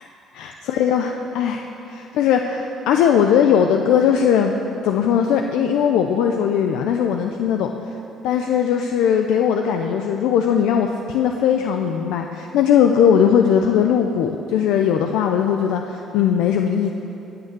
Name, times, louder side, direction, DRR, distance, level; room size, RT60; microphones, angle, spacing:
voice 1, 0.3-4.5 4.8-7.7 8.2-16.9, left 8 dB, 85° left, 4 dB, 0.6 m, -19 dB
17.5 x 6.8 x 7.5 m, 3.0 s
cardioid pair, 105°, 0 cm